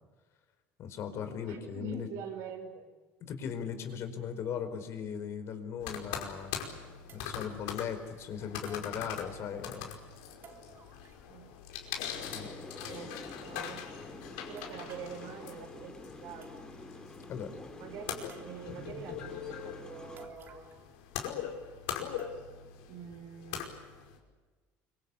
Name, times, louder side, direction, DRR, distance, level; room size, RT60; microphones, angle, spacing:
voice 1, 0.8-2.1 3.3-6.5 7.1-10.0 12.3-12.5 17.3-17.5, left 7 dB, 50° left, 8 dB, 4.8 m, -38 dB
voice 2, 1.4-2.9 11.2-11.6 12.8-13.9 14.5-16.5 17.8-20.7 22.9-23.7, right 6 dB, 70° right, 2 dB, 5.6 m, -45 dB
sound 1, 5.8-24.2, left 8 dB, 80° left, 5.2 m, -42 dB
sound 2, 7.1-7.7 8.7-9.5 10.4-11.4 11.6-11.7 12.3-13.1 14.6-15.2 16.0-16.1 16.4-16.9 17.3-17.4 18.3-18.9 20.2-20.9 21.2-21.3 22.2-22.7 23.1-23.2 23.9-24.0, right 7 dB, 40° right, 3.5 m, -57 dB
sound 3, 12.1-20.3, left 2 dB, 15° left, 3.2 m, -49 dB
25.0 x 24.5 x 8.5 m, 1.3 s
supercardioid pair, 115°, 6 cm